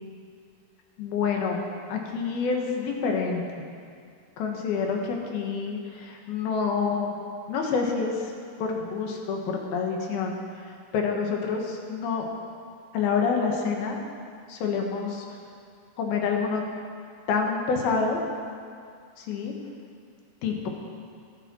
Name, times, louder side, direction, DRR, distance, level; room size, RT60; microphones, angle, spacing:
voice 1, 1.0-1.6 1.9-3.5 4.4-7.2 7.5-8.3 8.6-12.3 12.9-14.0 14.5-15.2 16.0-16.6 17.3-18.2 19.2-19.6 20.4-20.7, left 5 dB, 85° left, 1 dB, 3.3 m, -27 dB
22.5 x 9.1 x 4.5 m, 2.3 s
omnidirectional pair, 4.3 m